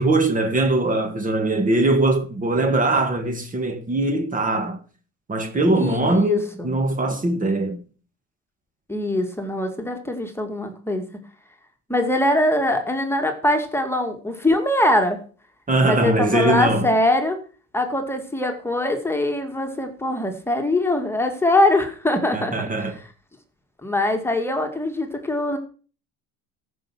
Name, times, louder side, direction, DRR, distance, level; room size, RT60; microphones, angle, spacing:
voice 1, 0.0-4.8 5.3-7.8 15.7-16.9 22.3-23.0, right 2 dB, 25° right, 1.9 m, -21 dB
voice 2, 5.7-6.7 8.9-11.0 11.9-15.2 15.8-17.4 17.7-22.9 23.8-25.6, left 1 dB, 10° left, 2.1 m, -22 dB
14.5 x 5.8 x 6.2 m
cardioid pair, 105°, 31 cm